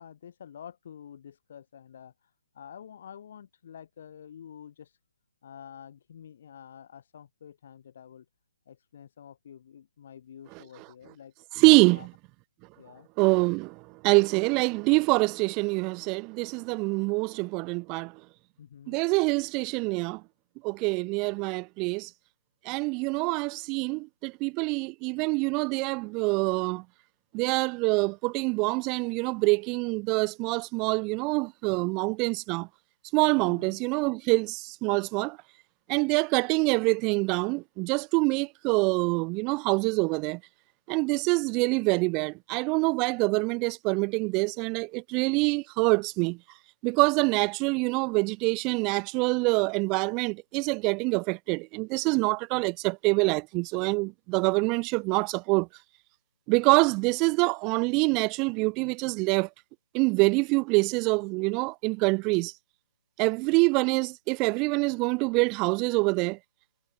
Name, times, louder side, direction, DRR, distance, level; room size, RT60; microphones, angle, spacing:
voice 1, 0.0-5.0 5.4-8.3 8.7-11.3 11.9-12.1 12.8-13.1 18.6-19.0 33.4-33.8, left 8 dB, 50° left, 5.9 m, -48 dB
voice 2, 11.6-12.1 13.2-18.2 18.9-20.2 20.6-22.1 22.6-26.8 27.3-32.7 33.1-35.4 35.9-40.4 40.9-46.4 46.8-55.7 56.5-59.5 59.9-62.5 63.2-66.4, right 28 dB, 25° right, 0.5 m, -25 dB
figure-of-eight pair, 140°, 0 cm